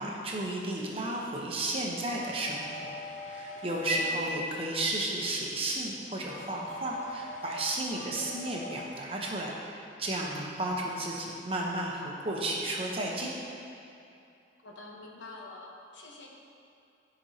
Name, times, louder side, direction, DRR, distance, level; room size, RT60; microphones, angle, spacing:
voice 1, 0.0-13.4, right 1 dB, 30° right, -2 dB, 0.9 m, -33 dB
sound 1, 2.1-8.9, left 2 dB, 40° left, 0.5 m, -45 dB
voice 2, 3.9-4.2 10.7-10.9 14.6-16.3, left 2 dB, 85° left, -2 dB, 1.1 m, -47 dB
13.0 x 5.1 x 2.8 m, 2.6 s
head